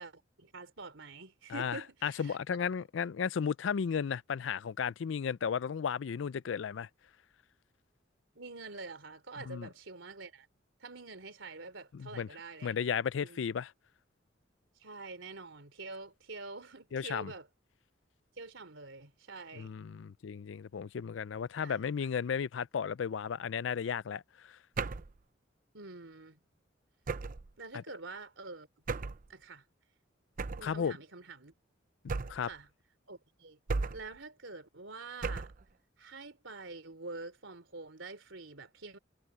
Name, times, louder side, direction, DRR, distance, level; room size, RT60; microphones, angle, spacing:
voice 1, 0.0-2.4 8.3-10.5 10.8-12.9 13.2-13.4 14.8-17.5 18.4-19.7 21.6-22.1 25.7-26.4 27.6-28.7 29.3-29.6 30.6-31.5 32.4-32.7 33.1-33.6 33.9-35.5 36.0-39.0, right 3 dB, 85° right, 3.2 m, -46 dB
voice 2, 1.5-6.9 9.5-9.7 11.9-12.3 12.6-13.7 16.9-17.3 19.6-24.2 30.6-30.9 32.0-32.5, left 7 dB, 75° left, 0.4 m, -34 dB
sound 1, 24.8-25.2 27.1-27.5 28.9-29.3 30.4-30.8 32.1-32.5 33.7-34.2 35.2-35.6, right 4 dB, 45° right, 0.6 m, -35 dB
head